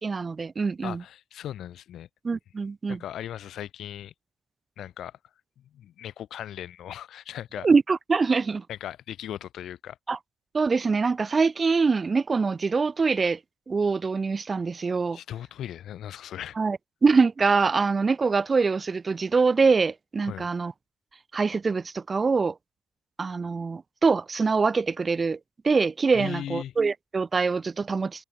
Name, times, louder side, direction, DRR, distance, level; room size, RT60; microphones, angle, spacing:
voice 1, 0.0-1.0 2.2-3.0 7.6-8.6 10.1-10.2 10.5-13.4 13.7-15.2 16.6-20.7 21.3-22.5 23.2-25.4 25.6-28.2, right 4 dB, 30° right, 2.5 m, -24 dB
voice 2, 0.8-2.1 2.9-4.1 4.8-5.2 5.7-7.7 8.7-10.0 15.1-16.6 20.2-20.5 26.1-26.7, left 11 dB, 75° left, 7.3 m, -38 dB
cardioid pair, 120°, 0 cm